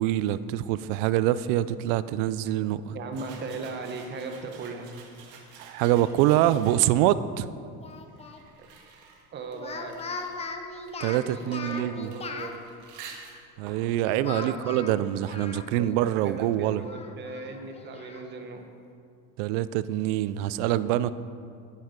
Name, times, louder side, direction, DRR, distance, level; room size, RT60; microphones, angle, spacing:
voice 1, 0.0-3.0 5.6-7.5 11.0-12.1 13.6-16.8 19.4-21.1, right 13 dB, 90° right, 15 dB, 0.6 m, -25 dB
voice 2, 2.9-4.9 8.6-8.7 9.3-10.0 11.4-12.6 14.4-14.6 15.0-15.1 16.1-18.7, right 4 dB, 30° right, 4 dB, 1.1 m, -38 dB
sound 1, 3.1-7.1 7.9-15.3, right 5 dB, 65° right, 1.8 m, -50 dB
Speech, 7.8-8.4 9.5-12.5 14.2-16.0 16.3-16.4 16.8-18.2, left 4 dB, 20° left, 0.7 m, -39 dB
11.5 x 10.0 x 5.2 m, 2.3 s
cardioid pair, 160°, 35 cm